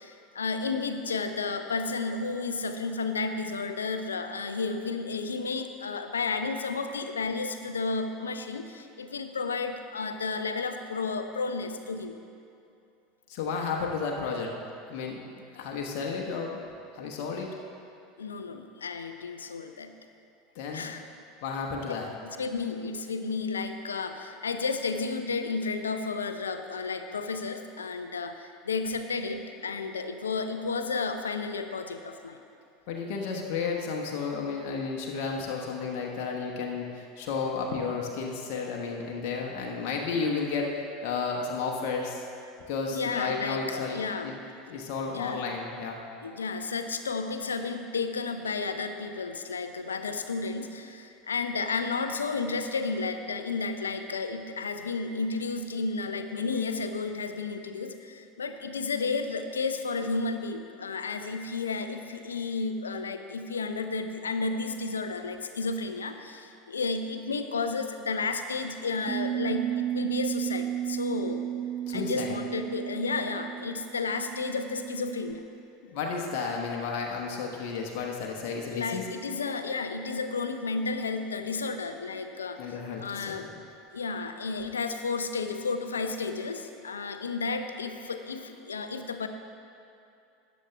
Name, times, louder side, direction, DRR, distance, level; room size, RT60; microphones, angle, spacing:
voice 1, 0.0-12.2 18.2-19.9 20.7-21.0 22.2-32.4 42.9-44.3 44.7-44.8 45.1-45.4 46.2-71.4 71.9-75.4 78.7-83.5 83.9-89.3, left 4 dB, 75° left, 8 dB, 0.6 m, -32 dB
voice 2, 13.3-14.5 14.9-16.6 16.9-17.5 20.5-20.9 21.4-22.1 32.9-42.2 42.7-44.3 44.7-46.0 71.9-72.4 73.7-73.8 75.8-79.1 82.1-82.3 82.6-83.5, left 5 dB, 50° left, 0 dB, 1.1 m, -32 dB
Bass guitar, 69.1-75.3, right 11 dB, 35° right, 1.0 m, -33 dB
13.0 x 9.5 x 3.4 m, 2.6 s
figure-of-eight pair, 80°, 0 cm